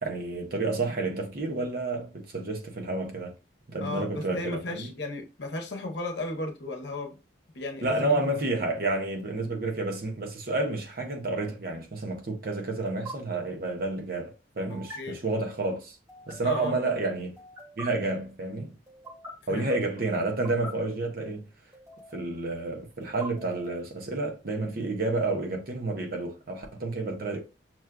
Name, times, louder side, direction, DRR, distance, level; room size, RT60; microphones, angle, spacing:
voice 1, 0.0-3.3 3.7-4.9 7.8-16.0 16.3-17.4 17.8-18.7 19.5-21.5 22.1-27.4, right 2 dB, 50° right, 0.8 m, -30 dB
voice 2, 3.8-7.2 7.5-8.2 14.7-15.2 16.4-16.8 19.5-19.8, left 2 dB, 60° left, 0.8 m, -35 dB
sound 1, 9.2-9.5 11.2-11.5 12.8-13.1 14.7-15.0 16.1-16.6 17.4-17.9 18.9-19.3 20.2-20.7 21.7-22.3 23.0-23.9, right 1 dB, 15° right, 1.1 m, -43 dB
6.0 x 2.3 x 2.2 m
head